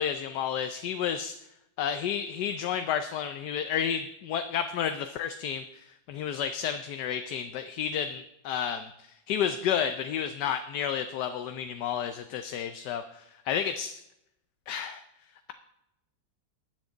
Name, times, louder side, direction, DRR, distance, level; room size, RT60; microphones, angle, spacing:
voice 1, 0.0-1.4 1.8-5.6 6.1-8.9 9.3-14.0 14.7-15.0, left 8 dB, 70° left, 8 dB, 1.2 m, -31 dB
20.5 x 7.4 x 3.9 m, 0.84 s
omnidirectional pair, 2.0 m